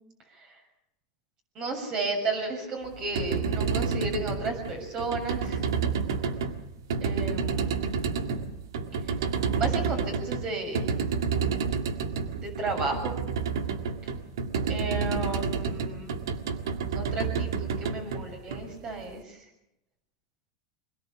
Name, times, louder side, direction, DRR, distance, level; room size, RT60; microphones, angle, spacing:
voice 1, 1.6-5.6 7.0-7.9 9.6-10.9 12.4-13.2 14.7-16.1 16.9-19.4, right 3 dB, 40° right, 4 dB, 7.0 m, -33 dB
sound 1, 2.9-19.1, right 5 dB, 90° right, 1.9 m, -30 dB
24.5 x 21.0 x 7.2 m, 0.84 s
supercardioid pair, 135°, 2 cm